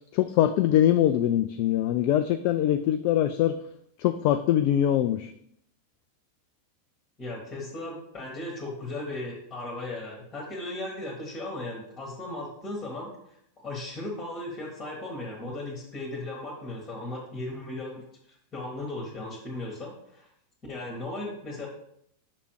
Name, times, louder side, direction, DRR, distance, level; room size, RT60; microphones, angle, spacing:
voice 1, 0.1-3.5 4.0-5.3, left 11 dB, 45° left, 9 dB, 0.3 m, -23 dB
voice 2, 7.2-13.3 13.6-18.0 18.5-20.3 20.7-21.7, left 2 dB, 20° left, -2 dB, 1.7 m, -36 dB
6.0 x 3.3 x 4.7 m, 0.71 s
figure-of-eight pair, 90°, 0 cm